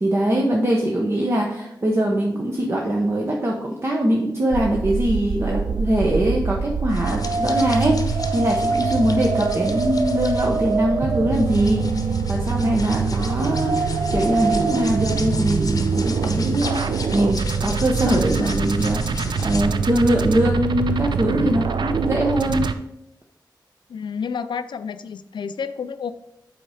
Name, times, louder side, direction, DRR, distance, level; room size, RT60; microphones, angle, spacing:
voice 1, 0.0-22.7, right 1 dB, 35° right, -1 dB, 0.9 m, -22 dB
sound 1, 4.5-22.7, right 5 dB, 75° right, 0.5 m, -24 dB
sound 2, 6.9-19.6, left 3 dB, 50° left, 0.8 m, -35 dB
voice 2, 23.9-26.1, left 6 dB, 85° left, 12 dB, 0.4 m, -30 dB
7.7 x 4.3 x 4.8 m, 0.82 s
wide cardioid pair, 115°, 8 cm